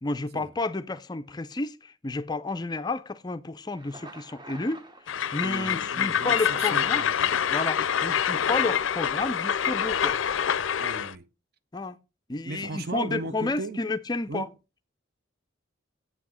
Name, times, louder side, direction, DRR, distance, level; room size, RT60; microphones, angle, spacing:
voice 1, 0.0-7.0 7.5-10.2 11.7-12.0 12.3-14.5, left 3 dB, 20° left, 0.4 m, -31 dB
Thunder, 3.6-7.6, right 2 dB, 20° right, 1.0 m, -50 dB
Train, 5.1-11.1, left 8 dB, 75° left, 0.5 m, -26 dB
voice 2, 5.4-7.3 10.8-11.3 12.4-13.8 14.3-14.5, right 3 dB, 50° right, 0.7 m, -36 dB
7.9 x 5.8 x 6.2 m
head